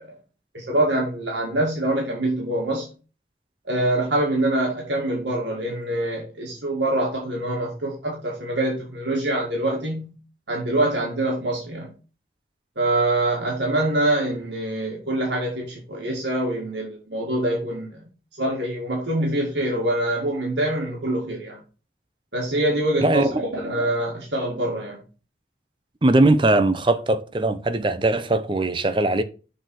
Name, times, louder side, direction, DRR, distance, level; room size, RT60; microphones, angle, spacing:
voice 1, 0.5-2.9 3.7-10.2 10.5-11.9 12.8-17.9 18.4-21.6 22.3-25.0, right 1 dB, 85° right, 2.1 m, -24 dB
voice 2, 26.0-29.2, right 2 dB, 25° right, 0.6 m, -20 dB
6.6 x 4.2 x 6.3 m
head